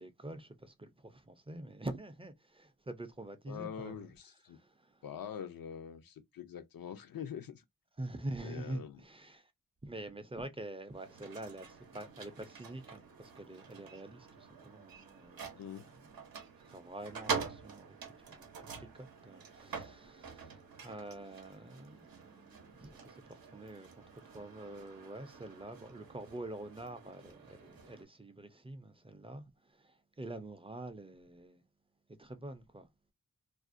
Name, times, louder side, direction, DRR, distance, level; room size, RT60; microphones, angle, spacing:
voice 1, 0.0-4.1 4.5-5.0 8.0-9.5 9.8-15.8 16.6-18.0 18.3-31.6 32.2-32.9, right 1 dB, 15° right, 0.3 m, -46 dB
voice 2, 3.5-4.6 5.0-7.6 8.4-9.0 15.5-15.9, left 8 dB, 80° left, 0.5 m, -44 dB
sound 1, 10.9-28.0, right 5 dB, 90° right, 0.6 m, -46 dB
2.4 x 2.1 x 2.4 m
wide cardioid pair, 75°, 34 cm